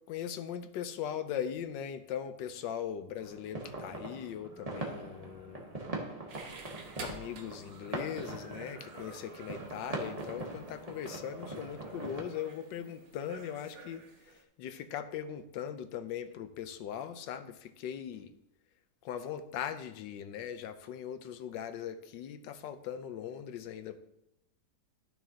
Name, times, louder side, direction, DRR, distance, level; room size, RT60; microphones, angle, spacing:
voice 1, 0.1-5.7 7.0-18.3 19.0-24.0, left 9 dB, 85° left, 10 dB, 1.4 m, -40 dB
sound 1, 3.2-12.2, right 2 dB, 25° right, 1.1 m, -42 dB
sound 2, 6.3-14.4, right 4 dB, 85° right, 1.8 m, -50 dB
12.5 x 6.3 x 2.8 m, 0.84 s
omnidirectional pair, 1.9 m